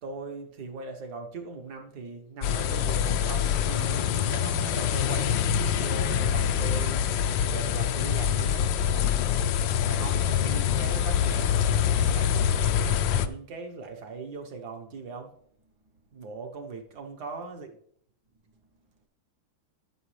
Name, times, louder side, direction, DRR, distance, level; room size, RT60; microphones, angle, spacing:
voice 1, 0.0-12.7 13.1-15.3 16.1-17.7, right 4 dB, 60° right, 1.5 m, -40 dB
sound 1, 2.4-13.3, left 9 dB, 75° left, 1.2 m, -25 dB
12.5 x 6.0 x 3.2 m
omnidirectional pair, 2.2 m